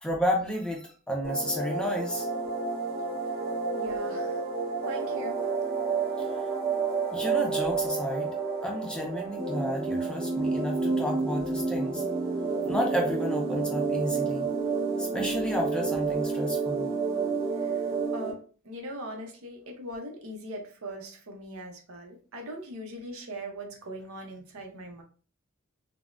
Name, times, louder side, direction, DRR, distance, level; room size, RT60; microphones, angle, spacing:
voice 1, 0.0-2.3 6.2-6.3 7.1-8.3 8.6-12.0 12.6-14.5 15.0-16.9, equal, 5° left, 0 dB, 0.5 m, -31 dB
sound 1, 1.2-18.3, right 4 dB, 45° right, 1.0 m, -30 dB
voice 2, 3.7-4.4 4.8-5.4 17.6-25.0, right 1 dB, 70° right, 2 dB, 0.7 m, -40 dB
3.5 x 2.0 x 2.4 m, 0.39 s
head